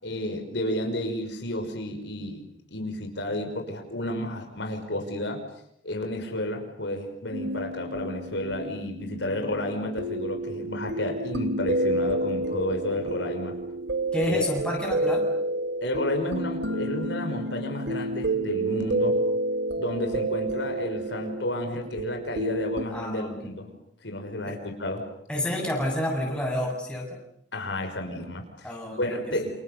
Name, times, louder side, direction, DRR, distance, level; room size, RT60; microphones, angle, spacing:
voice 1, 0.0-2.4 2.7-5.4 5.8-13.6 14.3-14.4 15.8-19.2 19.7-23.7 24.0-25.1 27.5-29.6, left 1 dB, 75° left, 4 dB, 5.8 m, -31 dB
sound 1, 7.3-22.9, right 1 dB, 70° right, 2.8 m, -30 dB
voice 2, 14.1-15.3 22.9-23.6 24.5-24.6 25.3-27.1 28.6-29.4, left 1 dB, 5° left, -1 dB, 8.0 m, -29 dB
29.0 x 28.0 x 6.9 m, 0.72 s
head